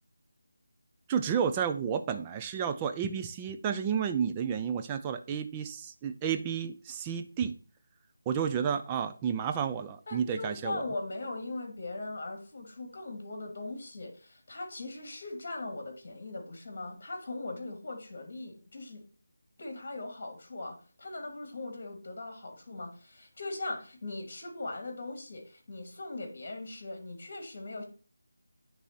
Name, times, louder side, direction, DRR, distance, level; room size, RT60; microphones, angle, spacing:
voice 1, 1.1-7.5 8.3-10.8, right 7 dB, 15° right, 0.5 m, -31 dB
voice 2, 10.1-19.0 19.6-27.8, left 2 dB, 45° left, 2.5 m, -40 dB
9.8 x 3.5 x 4.4 m
figure-of-eight pair, 165°, 0 cm